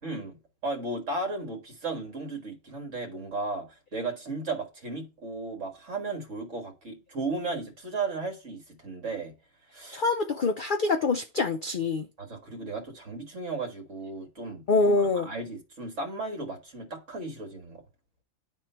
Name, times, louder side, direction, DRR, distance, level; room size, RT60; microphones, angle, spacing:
voice 1, 0.0-9.3 9.7-10.0 12.2-14.9 15.1-17.8, right 3 dB, 60° right, 2.0 m, -35 dB
voice 2, 9.9-12.1 14.7-15.3, left 3 dB, 55° left, 0.6 m, -25 dB
10.5 x 3.7 x 4.4 m
omnidirectional pair, 1.5 m